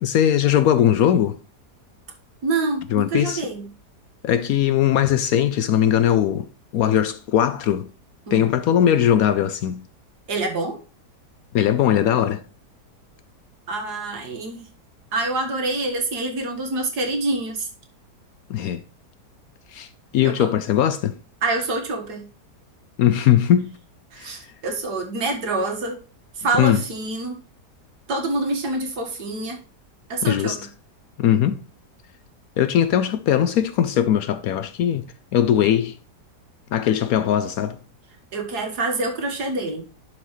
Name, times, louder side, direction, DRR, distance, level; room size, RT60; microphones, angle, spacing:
voice 1, 0.0-1.4 2.9-3.4 4.2-6.5 6.7-7.9 8.3-9.8 11.5-12.4 18.5-18.8 19.7-21.1 23.0-23.7 24.2-24.4 26.6-26.8 30.2-30.6 31.2-31.6 32.6-35.1 35.3-36.0 36.7-37.8, left 10 dB, 70° left, 0.9 m, -19 dB
voice 2, 2.4-3.7 8.3-8.5 10.3-10.8 13.7-14.6 15.1-17.7 20.2-20.5 21.4-22.3 24.1-26.0 26.4-27.4 28.1-29.6 30.1-30.7 38.3-39.8, right 2 dB, 70° right, 2.1 m, -26 dB
11.5 x 4.7 x 3.1 m
omnidirectional pair, 1.8 m